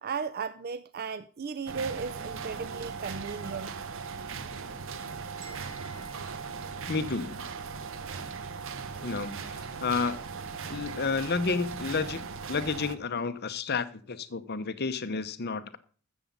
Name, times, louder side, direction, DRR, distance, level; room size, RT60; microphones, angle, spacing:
voice 1, 0.0-3.7, right 5 dB, 45° right, 0.5 m, -35 dB
sound 1, 1.7-13.0, right 5 dB, 65° right, 1.0 m, -38 dB
sound 2, 5.4-7.4, right 2 dB, 85° right, 3.5 m, -54 dB
voice 2, 6.9-7.5 9.0-10.2 10.7-15.8, left 4 dB, 50° left, 0.8 m, -31 dB
14.5 x 7.1 x 5.5 m
head